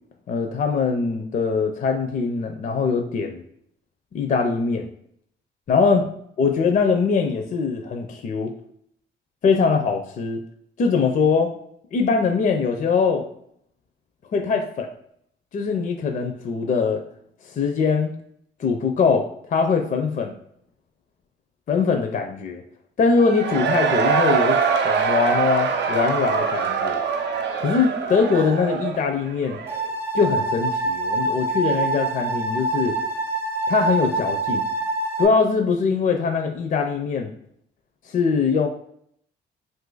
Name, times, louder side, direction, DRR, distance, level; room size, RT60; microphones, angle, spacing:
voice 1, 0.3-3.4 4.1-4.9 5.7-6.0 6.4-8.5 9.4-10.4 10.8-11.5 11.9-13.3 14.3-14.9 15.5-17.0 17.5-18.1 18.6-19.2 19.5-20.3 21.7-22.6 23.0-27.0 27.6-29.6 30.1-33.0 33.7-34.6 35.2-37.3 38.0-38.7, left 5 dB, 40° left, 4 dB, 0.5 m, -22 dB
Cheering / Crowd, 23.1-29.9, right 6 dB, 60° right, 0.5 m, -23 dB
sound 1, 29.7-35.3, right 2 dB, 10° right, 0.5 m, -25 dB
2.6 x 2.5 x 3.8 m, 0.69 s
cardioid pair, 90°, 20 cm